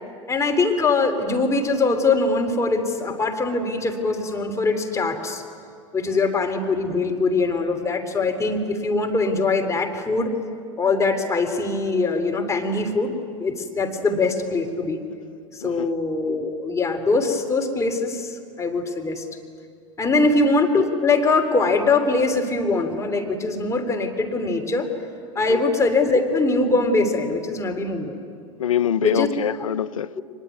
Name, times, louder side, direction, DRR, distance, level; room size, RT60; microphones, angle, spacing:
voice 1, 0.3-5.4 5.9-10.3 10.8-15.0 15.6-19.2 20.0-24.9 25.3-28.2 29.0-29.3 30.2-30.3, left 3 dB, 15° left, 3.3 m, -22 dB
voice 2, 28.6-30.2, left 9 dB, 80° left, 0.6 m, -25 dB
23.5 x 21.0 x 9.4 m
hypercardioid pair, 85°, 17 cm